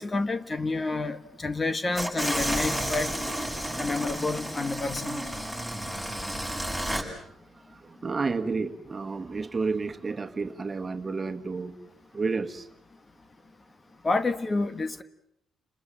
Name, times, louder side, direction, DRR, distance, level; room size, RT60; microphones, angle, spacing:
voice 1, 0.0-3.1 3.8-5.3 14.0-15.0, left 3 dB, 25° left, 11 dB, 1.3 m, -29 dB
sound 1, 1.9-7.0, equal, 5° left, 7.1 m, -31 dB
voice 2, 7.2-11.8 12.1-12.7, right 4 dB, 30° right, 6 dB, 1.8 m, -31 dB
30.0 x 20.5 x 7.7 m, 0.76 s
cardioid pair, 90°, 0 cm